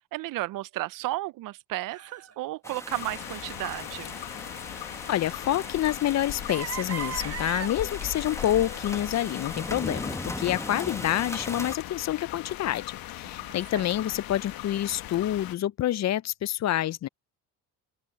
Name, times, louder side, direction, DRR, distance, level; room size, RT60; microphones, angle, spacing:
voice 1, 0.1-4.2 13.4-13.9, right 18 dB, 60° right, 0.5 m, -34 dB
sound 1, 1.9-2.3 2.7-2.8 3.3-3.4 4.7-5.6 6.0-6.1 6.5-8.9 9.9-10.0, right 6 dB, 40° right, 1.4 m, -37 dB
sound 2, 2.6-11.8, left 1 dB, 5° left, 1.4 m, -39 dB
sound 3, 2.9-15.6, left 14 dB, 65° left, 1.3 m, -39 dB
voice 2, 5.1-12.8 13.1-17.1, left 12 dB, 45° left, 0.6 m, -27 dB
open air
supercardioid pair, 80°, 38 cm